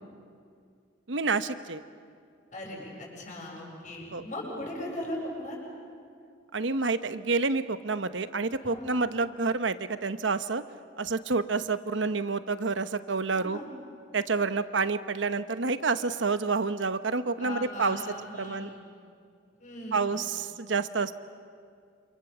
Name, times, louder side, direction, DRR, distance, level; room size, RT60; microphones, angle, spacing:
voice 1, 1.1-1.8 4.1-4.2 6.5-10.6 11.0-13.6 14.1-18.0 18.4-18.7 19.9-21.2, right 4 dB, 80° right, 11 dB, 1.0 m, -28 dB
voice 2, 2.5-5.6 8.6-9.1 13.3-13.7 17.4-18.8 19.6-20.1, left 1 dB, 40° left, -2 dB, 7.7 m, -38 dB
28.0 x 27.5 x 7.3 m, 2.3 s
head